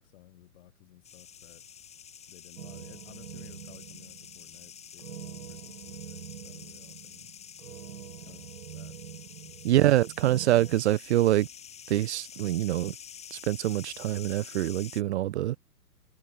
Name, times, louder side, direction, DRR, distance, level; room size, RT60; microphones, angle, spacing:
voice 1, 0.0-1.7 2.3-7.3 8.2-9.0 9.4-9.6, left 16 dB, 45° left, 6.5 m, -56 dB
sound 1, 1.0-15.0, left 8 dB, 15° left, 3.3 m, -48 dB
sound 2, 2.6-10.8, right 9 dB, 65° right, 1.9 m, -45 dB
voice 2, 9.6-11.5 11.9-13.0 13.3-15.6, right 14 dB, 45° right, 1.0 m, -25 dB
hypercardioid pair, 140°, 47 cm